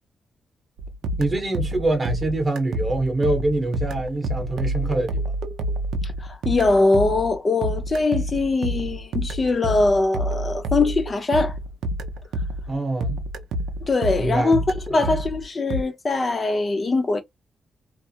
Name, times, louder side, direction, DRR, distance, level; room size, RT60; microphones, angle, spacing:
sound 1, 0.8-12.8 13.0-15.8, right 1 dB, 90° right, 0.5 m, -28 dB
voice 1, 1.2-5.2 12.7-13.2 14.2-14.6 14.9-15.2, right 2 dB, 25° right, 0.8 m, -24 dB
voice 2, 6.0-11.6 13.9-17.2, left 3 dB, 30° left, 0.6 m, -22 dB
2.4 x 2.0 x 2.6 m
wide cardioid pair, 130°, 0 cm